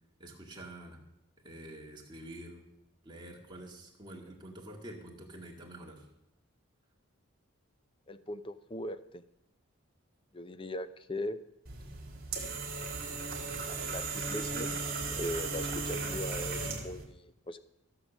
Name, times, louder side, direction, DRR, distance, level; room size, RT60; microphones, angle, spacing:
voice 1, 0.2-1.0 1.4-2.6 3.0-6.1, right 1 dB, 20° right, -1 dB, 2.1 m, -47 dB
voice 2, 8.1-9.2 10.3-11.4 13.8-14.8 15.2-17.6, left 1 dB, 25° left, 13 dB, 0.6 m, -39 dB
sound 1, 11.7-17.0, right 4 dB, 40° right, 2.7 m, -36 dB
14.5 x 6.8 x 7.2 m, 0.86 s
head